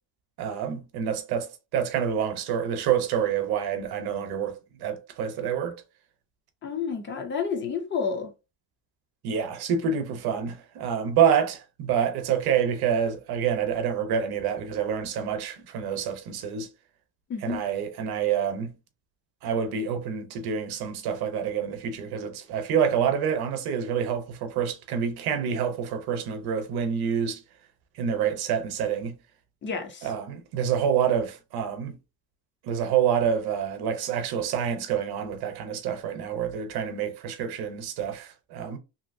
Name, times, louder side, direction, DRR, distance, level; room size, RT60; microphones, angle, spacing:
voice 1, 0.4-5.8 9.2-16.7 17.4-18.7 19.4-27.4 28.0-29.1 30.0-31.9 32.6-38.8, right 8 dB, 55° right, 0.7 m, -27 dB
voice 2, 6.6-8.3 17.3-17.6 29.6-30.1, left 6 dB, 25° left, 0.4 m, -30 dB
2.9 x 2.7 x 2.5 m
cardioid pair, 180°, 47 cm